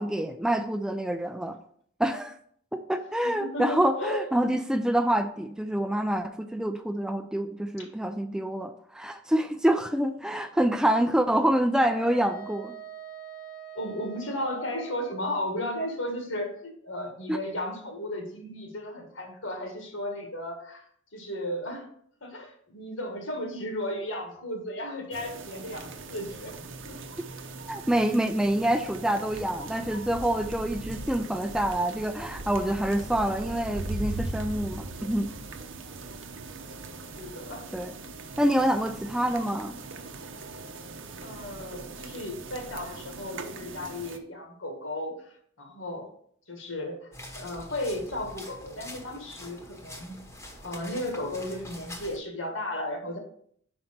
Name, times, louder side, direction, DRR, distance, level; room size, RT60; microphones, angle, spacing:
voice 1, 0.0-1.6 2.0-2.3 2.7-12.7 17.3-17.4 27.7-35.4 37.7-37.9 38.4-39.8, right 1 dB, 5° right, 8 dB, 0.3 m, -26 dB
voice 2, 3.2-4.2 7.8-7.9 13.8-20.8 21.1-21.9 22.2-26.5 26.8-27.0 27.4-27.5 37.2-37.7 38.0-38.1 41.2-45.1 45.6-46.1 46.5-50.2 50.6-53.2, left 1 dB, 85° left, 2 dB, 1.8 m, -35 dB
Wind instrument woodwind instrument, 11.7-15.3, right 9 dB, 50° left, 0.8 m, -44 dB
sound 1, 25.1-44.2, right 2 dB, 70° right, 0.7 m, -40 dB
sound 2, 47.1-52.2, left 1 dB, 15° left, 1.0 m, -44 dB
5.3 x 4.4 x 5.8 m, 0.63 s
head